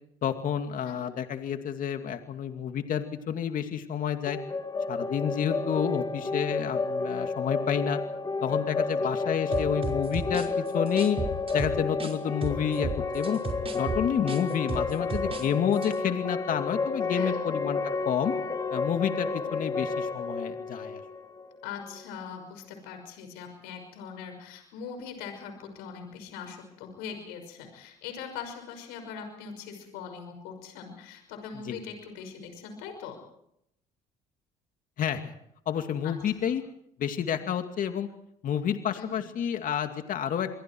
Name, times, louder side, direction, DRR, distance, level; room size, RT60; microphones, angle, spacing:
voice 1, 0.2-4.4 4.9-8.0 8.4-11.2 11.5-13.4 13.7-18.3 18.7-21.0 31.7-31.8 35.0-35.3 35.7-36.6 37.0-38.1 38.4-40.5, left 8 dB, 55° left, 6 dB, 2.4 m, -29 dB
sound 1, 4.2-22.0, left 3 dB, 20° left, 1.8 m, -31 dB
sound 2, 9.5-12.1 12.4-15.5 15.7-15.9, right 3 dB, 35° right, 5.4 m, -34 dB
voice 2, 21.6-33.2 36.0-36.1 36.4-36.5 38.9-39.2, left 6 dB, 80° left, 6 dB, 5.9 m, -41 dB
28.0 x 22.5 x 4.7 m, 0.75 s
supercardioid pair, 70°, 16 cm